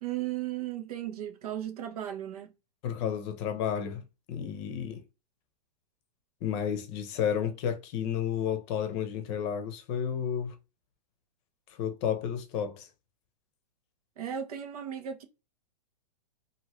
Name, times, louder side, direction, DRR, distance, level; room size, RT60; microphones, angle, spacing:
voice 1, 0.0-2.5 14.2-15.2, right 11 dB, 65° right, 1.0 m, -35 dB
voice 2, 2.8-4.0 4.3-5.0 6.4-10.5 11.8-12.9, left 8 dB, 40° left, 0.8 m, -31 dB
2.7 x 2.7 x 3.0 m
hypercardioid pair, 130°, 21 cm